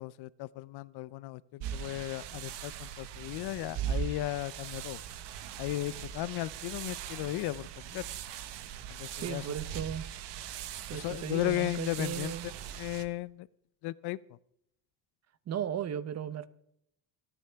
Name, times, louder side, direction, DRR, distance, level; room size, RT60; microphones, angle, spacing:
voice 1, 0.0-5.0 5.6-8.0 8.9-9.5 10.9-12.3 12.7-13.5 13.8-14.2, left 17 dB, 60° left, 0.6 m, -35 dB
sound 1, 1.6-13.0, right 9 dB, 65° right, 1.2 m, -40 dB
voice 2, 9.1-10.1 10.9-12.5 15.5-16.5, right 9 dB, 35° right, 0.7 m, -36 dB
26.0 x 9.7 x 3.4 m
cardioid pair, 130°, 46 cm